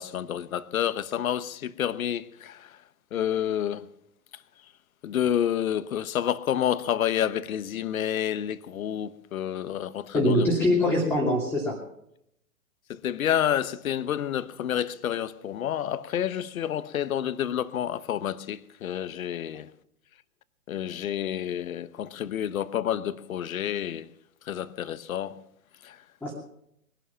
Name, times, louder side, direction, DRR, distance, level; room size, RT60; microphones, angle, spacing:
voice 1, 0.0-2.8 3.1-3.9 4.3-4.4 5.0-10.5 12.9-19.7 20.7-24.1 24.4-25.4 25.8-26.0, left 10 dB, 65° left, 1.1 m, -29 dB
voice 2, 10.1-11.8 26.2-26.3, left 1 dB, 5° left, 2.7 m, -23 dB
21.0 x 11.5 x 5.8 m
hypercardioid pair, 125°, 46 cm